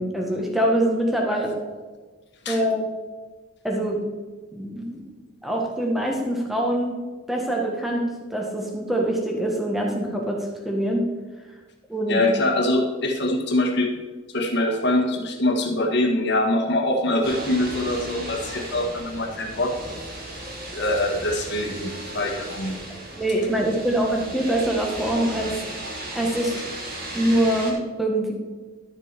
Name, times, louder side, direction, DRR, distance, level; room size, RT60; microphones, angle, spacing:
voice 1, 0.0-1.7 2.5-2.9 3.6-4.0 4.5-5.0 5.4-7.0 7.3-11.1 11.9-12.2 23.2-25.6 26.1-26.6 27.1-28.3, right 1 dB, ahead, 0 dB, 1.6 m, -24 dB
voice 2, 12.1-13.9 14.3-20.0 20.7-22.8, left 1 dB, 50° left, 1 dB, 1.8 m, -24 dB
sound 1, 17.2-27.7, right 1 dB, 45° right, 2.6 m, -35 dB
12.5 x 6.9 x 4.6 m, 1.4 s
head